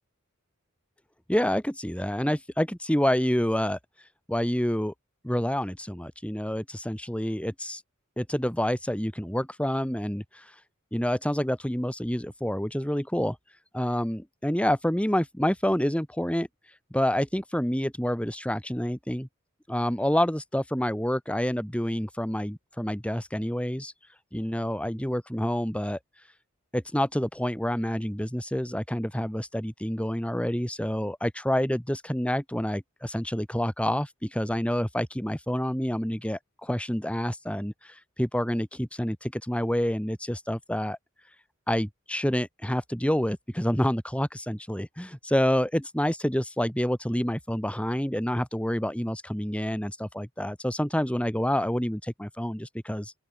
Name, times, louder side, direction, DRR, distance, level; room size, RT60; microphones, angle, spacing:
voice 1, 1.3-4.9 5.2-7.8 8.2-10.6 10.9-19.3 19.7-26.3 26.7-41.0 41.2-41.4 41.7-53.1, equal, 5° left, 2.4 m, -28 dB
open air
head